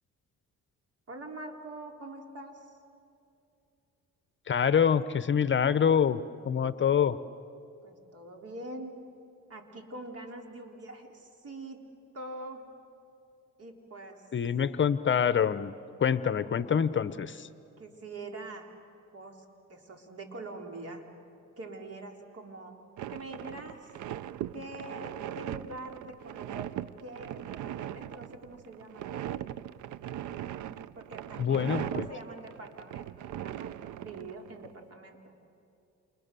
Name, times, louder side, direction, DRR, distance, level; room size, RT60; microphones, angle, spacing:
voice 1, 1.1-2.7 7.8-8.9 9.5-11.8 12.1-12.7 13.6-14.2 17.8-18.7 19.1-21.1 21.6-22.8 23.1-23.9 24.5-26.7 27.0-29.3 31.0-33.7 34.0-35.3, right 2 dB, 50° right, 3 dB, 4.0 m, -44 dB
voice 2, 4.5-6.2 6.4-7.2 14.3-15.7 16.0-17.5 31.4-32.1, left 7 dB, 40° left, 14 dB, 0.8 m, -25 dB
sound 1, 23.0-34.7, right 11 dB, 75° right, 0.7 m, -39 dB
30.0 x 28.5 x 6.9 m, 2.7 s
cardioid pair, 90°, 30 cm